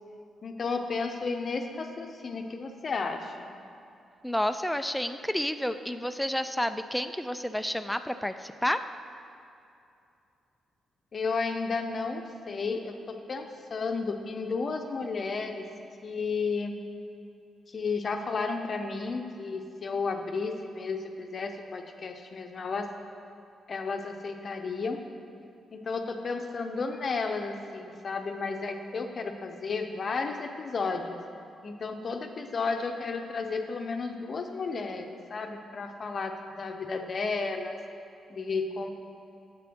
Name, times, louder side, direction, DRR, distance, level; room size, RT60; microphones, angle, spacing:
voice 1, 0.4-3.5 11.1-15.7 16.0-16.7 17.7-22.9 23.7-25.1 25.7-31.2 31.6-37.8 38.3-38.9, left 4 dB, 50° left, 5 dB, 0.7 m, -33 dB
voice 2, 4.2-8.8, left 1 dB, 5° left, 9 dB, 0.4 m, -30 dB
8.4 x 3.3 x 6.4 m, 2.6 s
hypercardioid pair, 40°, 0 cm